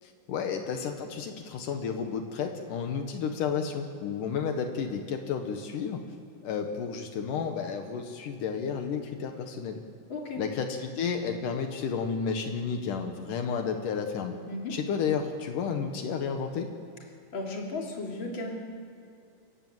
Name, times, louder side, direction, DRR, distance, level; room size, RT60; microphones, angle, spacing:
voice 1, 0.0-6.0 6.4-9.8 10.4-14.4 14.7-16.7, left 6 dB, 80° left, 5 dB, 2.9 m, -32 dB
voice 2, 10.1-10.4 14.5-14.8 17.3-18.5, left 2 dB, 40° left, 0 dB, 3.6 m, -35 dB
28.0 x 14.5 x 7.9 m, 2.6 s
omnidirectional pair, 3.7 m